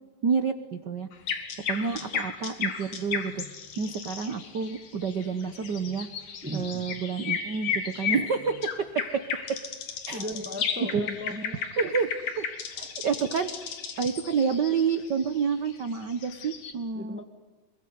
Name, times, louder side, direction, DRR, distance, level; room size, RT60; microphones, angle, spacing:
voice 1, 0.2-1.1 1.7-3.4 3.8-6.1 6.5-8.6 10.1-10.2 10.8-11.1 11.8-12.1 12.4-12.5 12.8-13.5 14.0-17.2, right 6 dB, 90° right, 9 dB, 0.9 m, -28 dB
sound 1, 1.1-16.7, left 6 dB, 70° left, 3.6 m, -35 dB
voice 2, 6.4-6.8 10.1-11.6 16.9-17.2, equal, 15° right, 6 dB, 0.3 m, -36 dB
27.0 x 23.0 x 9.6 m, 1.3 s
omnidirectional pair, 3.7 m